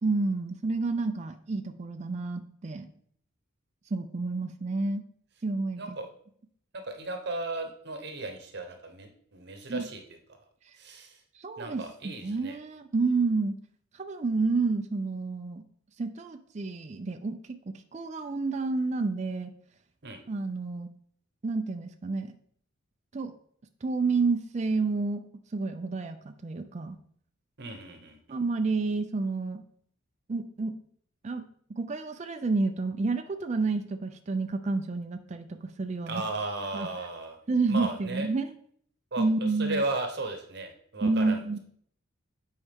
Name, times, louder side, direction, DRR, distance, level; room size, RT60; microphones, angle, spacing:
voice 1, 0.0-2.9 3.9-5.0 5.4-6.0 9.7-9.9 11.3-13.6 13.9-15.6 16.0-17.6 17.9-19.5 20.3-20.9 21.4-22.3 23.1-23.3 23.8-25.2 25.5-27.0 28.3-29.6 30.3-30.7 31.2-31.4 31.7-36.2 36.7-36.9 37.5-38.5 39.2-39.8 41.0-41.6, right 3 dB, 35° right, 7 dB, 0.4 m, -29 dB
voice 2, 5.8-6.1 6.9-10.0 10.8-11.1 11.6-12.6 20.0-20.2 27.6-28.2 36.1-37.4 37.7-38.3 39.1-39.2 39.6-41.4, right 2 dB, 50° right, 5 dB, 0.9 m, -35 dB
8.1 x 4.7 x 3.6 m, 0.62 s
head